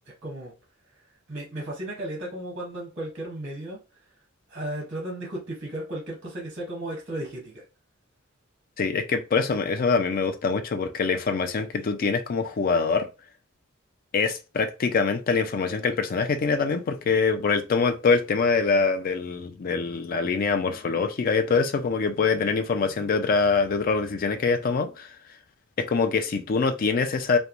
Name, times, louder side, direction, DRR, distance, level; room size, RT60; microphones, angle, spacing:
voice 1, 0.2-0.5 1.3-3.8 4.5-7.6, right 1 dB, 35° right, 0.8 m, -34 dB
voice 2, 8.8-13.1 14.1-25.1 25.8-27.4, left 4 dB, 45° left, 0.3 m, -24 dB
2.9 x 2.2 x 2.4 m
head